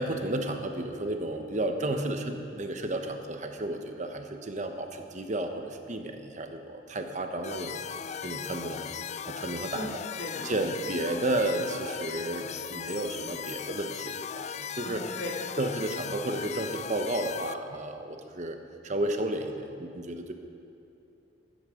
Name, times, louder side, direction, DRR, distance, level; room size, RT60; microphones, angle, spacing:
voice 1, 0.0-7.8 8.2-8.9 9.3-9.9 10.4-15.0 15.6-18.6 18.8-20.3, right 1 dB, 40° right, 5 dB, 1.1 m, -32 dB
sound 1, 7.4-17.5, left 8 dB, 40° left, 0.4 m, -38 dB
voice 2, 14.8-15.3, left 1 dB, 85° left, -1 dB, 2.8 m, -37 dB
15.0 x 13.0 x 5.2 m, 2.8 s
head